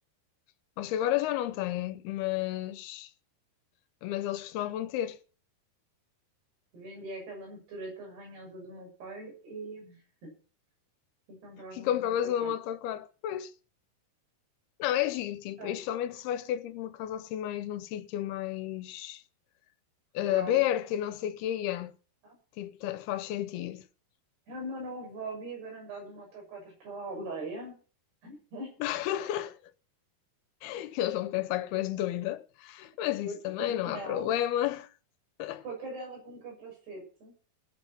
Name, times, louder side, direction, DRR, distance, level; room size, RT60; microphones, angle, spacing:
voice 1, 0.8-3.1 4.0-5.2 11.7-13.5 14.8-19.2 20.1-21.9 22.6-23.8 28.8-29.6 30.6-34.9 35.4-35.6, left 12 dB, 80° left, 2.7 m, -31 dB
voice 2, 6.7-10.3 11.3-12.5 15.0-15.1 15.6-15.8 20.2-20.6 22.2-22.4 24.5-27.8 28.2-28.8 33.0-34.4 35.6-37.3, right 2 dB, 90° right, 8.6 m, -42 dB
18.5 x 7.6 x 5.9 m
omnidirectional pair, 4.6 m